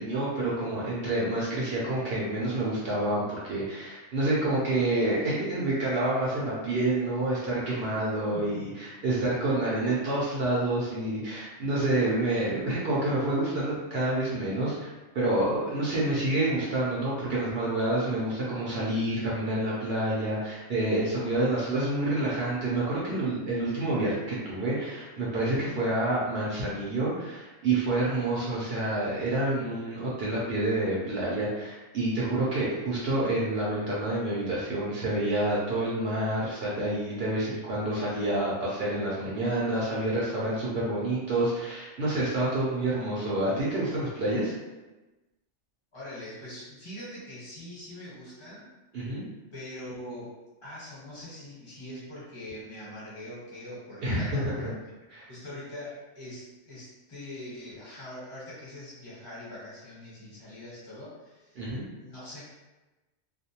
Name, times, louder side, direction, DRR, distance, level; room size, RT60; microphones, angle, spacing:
voice 1, 0.0-44.5 48.9-49.2 54.0-54.7 55.1-55.3 61.6-61.8, right 1 dB, 65° right, -6 dB, 0.8 m, -28 dB
voice 2, 8.3-8.7 45.9-48.7 49.5-50.3 50.6-54.7 55.3-61.6 62.0-62.4, left 1 dB, 25° left, -9 dB, 1.0 m, -43 dB
2.5 x 2.0 x 2.7 m, 1.1 s
omnidirectional pair, 1.2 m